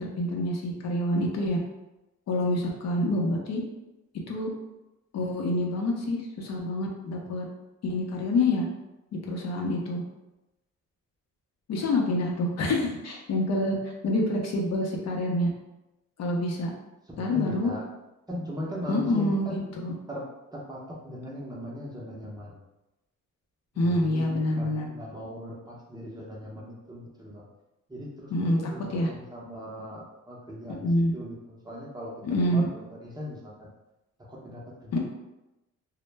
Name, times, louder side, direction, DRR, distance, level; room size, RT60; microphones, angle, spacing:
voice 1, 0.0-1.6 2.3-3.6 4.3-4.5 5.1-7.5 7.8-8.6 9.3-10.0 11.7-13.8 14.0-15.5 16.2-16.7 17.2-17.7 18.9-19.6 19.8-19.9 23.8-24.9 28.3-28.6 28.9-29.1 30.7-31.1 32.2-32.7 34.9-35.0, left 1 dB, 60° left, 0 dB, 0.6 m, -26 dB
voice 2, 17.1-17.9 18.3-19.7 20.1-22.6 23.7-27.4 27.9-32.1 32.4-33.7 34.3-35.0, equal, 15° right, -4 dB, 0.6 m, -39 dB
2.0 x 2.0 x 3.2 m, 0.98 s
cardioid pair, 90°, 30 cm